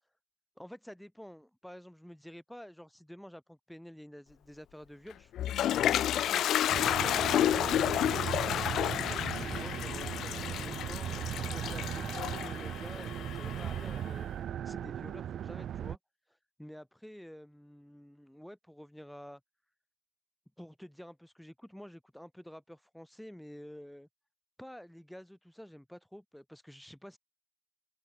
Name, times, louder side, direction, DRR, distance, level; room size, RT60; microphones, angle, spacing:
voice 1, 0.6-7.8 8.3-11.1 11.5-14.3 14.6-16.0 16.6-19.4 20.6-24.1 24.6-27.2, equal, ahead, 6.5 m, -49 dB
Toilet flush, 5.1-14.0, left 11 dB, 45° left, 1.0 m, -31 dB
sound 1, 6.7-16.0, right 10 dB, 40° right, 2.0 m, -38 dB
hypercardioid pair, 90°, 0 cm